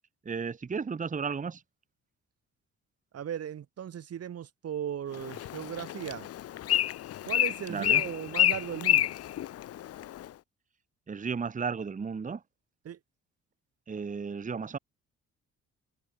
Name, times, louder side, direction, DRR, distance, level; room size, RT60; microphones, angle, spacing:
voice 1, 0.2-1.6 7.7-8.0 11.1-12.4 13.9-14.8, right 5 dB, 25° right, 1.1 m, -34 dB
voice 2, 3.1-6.3 7.2-9.1 12.8-13.0, right 9 dB, 55° right, 1.4 m, -37 dB
Bird, 5.1-10.3, left 12 dB, 55° left, 0.6 m, -29 dB
cardioid pair, 90°, 30 cm